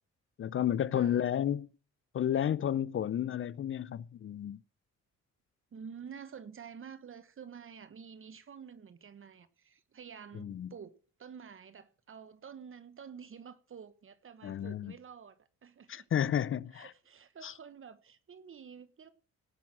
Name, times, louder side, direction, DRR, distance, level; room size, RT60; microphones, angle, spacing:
voice 1, 0.4-1.7 2.1-4.6 10.4-10.7 14.4-14.9 15.9-16.9 17.4-17.5, left 10 dB, 45° left, 0.5 m, -31 dB
voice 2, 5.7-16.1 16.7-19.1, right 7 dB, 45° right, 1.2 m, -49 dB
18.0 x 6.1 x 6.0 m
cardioid pair, 90°, 30 cm